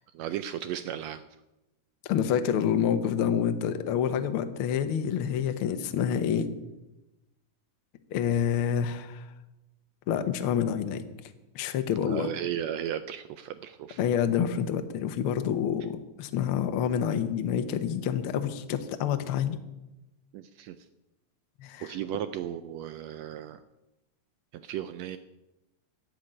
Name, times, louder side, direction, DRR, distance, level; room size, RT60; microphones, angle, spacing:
voice 1, 0.1-1.2 12.0-14.0 20.3-20.8 21.8-23.6 24.5-25.2, right 10 dB, 80° right, 11 dB, 1.6 m, -35 dB
voice 2, 2.1-6.5 8.1-9.2 10.1-11.0 11.5-12.3 14.0-19.6 21.6-21.9, left 8 dB, 65° left, 9 dB, 1.4 m, -27 dB
11.5 x 7.8 x 9.6 m, 0.99 s
omnidirectional pair, 3.4 m